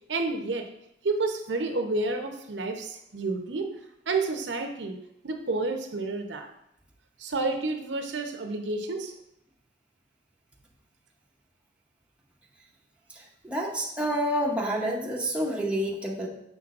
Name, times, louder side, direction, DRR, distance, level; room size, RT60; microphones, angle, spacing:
voice 1, 0.1-0.6 1.0-3.7 4.1-5.0 5.2-6.5 7.2-9.1, right 3 dB, 80° right, 5 dB, 0.8 m, -30 dB
voice 2, 13.4-16.3, equal, 5° right, -3 dB, 0.9 m, -28 dB
6.7 x 6.0 x 2.5 m, 0.79 s
head